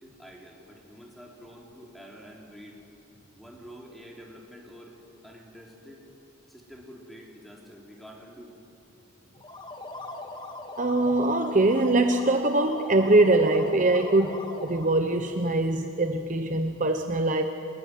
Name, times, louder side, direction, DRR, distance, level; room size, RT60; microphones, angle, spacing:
voice 1, 0.0-2.8 3.3-5.0 5.2-6.0 6.5-8.5, equal, ahead, -2 dB, 3.8 m, -47 dB
sound 1, 9.3-15.0, left 2 dB, 20° left, 1.9 m, -40 dB
voice 2, 10.8-17.4, right 2 dB, 35° right, 6 dB, 1.0 m, -23 dB
26.5 x 21.0 x 9.4 m, 2.8 s
head